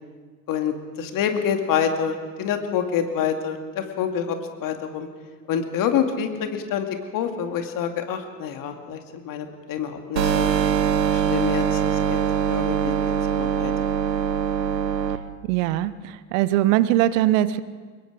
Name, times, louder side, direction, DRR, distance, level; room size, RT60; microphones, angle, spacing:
voice 1, 0.5-4.4 4.6-5.1 5.5-6.9 7.1-9.0 9.2-10.5 11.1-11.8 12.1-12.2 12.5-13.7, left 8 dB, 45° left, 5 dB, 2.4 m, -27 dB
sound 1, 10.2-15.2, right 8 dB, 90° right, 1.0 m, -22 dB
voice 2, 15.4-17.6, right 14 dB, 55° right, 16 dB, 0.9 m, -21 dB
24.0 x 21.0 x 5.1 m, 1.5 s
figure-of-eight pair, 75°, 48 cm